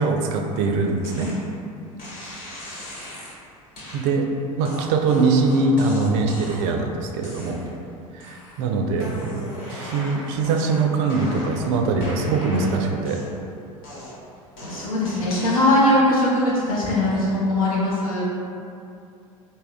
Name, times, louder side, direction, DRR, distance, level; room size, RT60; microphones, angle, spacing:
voice 1, 0.0-1.3 3.9-4.3 4.6-7.6 8.1-13.2, right 3 dB, 60° right, 3 dB, 0.4 m, -22 dB
sound 1, 1.0-1.4 2.0-3.4 3.8-4.0 4.6-6.8 7.2-7.8 8.2-8.6 8.9-11.7 12.0-13.5 13.8-15.9, left 1 dB, 55° left, 1.1 m, -38 dB
voice 2, 14.6-18.2, left 1 dB, 85° left, -7 dB, 0.8 m, -20 dB
3.4 x 2.2 x 2.4 m, 2.6 s
hypercardioid pair, 80°, 18 cm